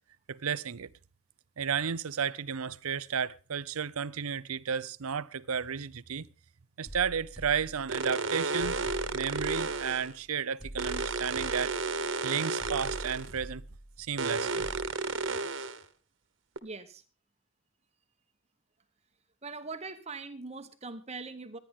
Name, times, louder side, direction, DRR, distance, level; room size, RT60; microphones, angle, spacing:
voice 1, 0.3-0.9 1.6-6.3 6.8-8.8 9.1-11.7 12.2-13.6 14.0-14.7, right 7 dB, 75° right, 0.6 m, -33 dB
sound 1, 6.9-8.2 8.6-10.2 10.6-12.2 12.6-14.2 14.6-14.9, right 1 dB, 5° right, 1.3 m, -44 dB
sound 2, 7.9-10.1 10.8-13.3 14.2-15.8 16.6-16.7, right 3 dB, 55° right, 1.3 m, -32 dB
voice 2, 16.6-17.0 19.4-21.6, right 3 dB, 30° right, 1.0 m, -41 dB
25.0 x 10.0 x 3.6 m
head